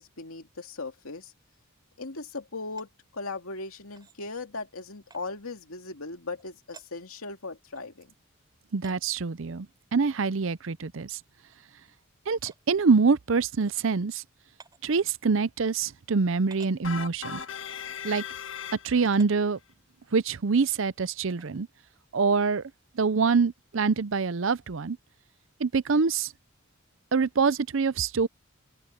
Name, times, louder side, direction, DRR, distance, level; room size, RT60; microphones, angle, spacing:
voice 1, 0.0-1.3 2.0-8.1, left 3 dB, 90° left, 2.5 m, -38 dB
sound 1, 2.7-2.9 3.9-4.2 5.1-5.2 6.4-6.5 6.7-6.9 7.7-7.9 8.8-9.0 10.2-10.3 10.7-10.8 11.5-11.6 12.5-12.6 13.6-13.7 14.6-14.9 15.8-15.9 16.5-16.8 17.7-18.0 19.0-19.3 20.0-20.2 21.4-21.6, right 4 dB, 20° right, 5.1 m, -52 dB
voice 2, 8.7-9.7 9.9-11.2 12.3-14.2 14.8-17.4 18.0-18.2 18.8-19.6 20.1-21.7 22.1-22.6 23.0-25.0 25.6-26.3 27.1-28.3, right 5 dB, 65° right, 0.6 m, -25 dB
sound 2, 16.8-19.2, left 7 dB, 65° left, 1.5 m, -38 dB
open air
head